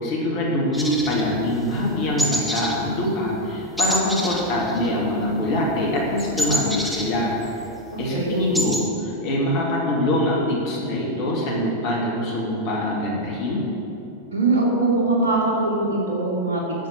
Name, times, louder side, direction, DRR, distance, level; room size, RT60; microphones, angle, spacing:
voice 1, 0.0-7.4 8.0-13.7, left 1 dB, 45° left, -3 dB, 2.6 m, -24 dB
sound 1, 0.7-1.9 2.2-2.8 3.1-3.3 3.8-5.3 5.6-7.7 8.0-8.1 8.3-8.9, equal, ahead, 1.3 m, -27 dB
voice 2, 7.9-8.3 14.3-16.6, right 2 dB, 65° right, -4 dB, 2.4 m, -22 dB
9.7 x 7.3 x 6.1 m, 2.8 s
figure-of-eight pair, 90°, 0 cm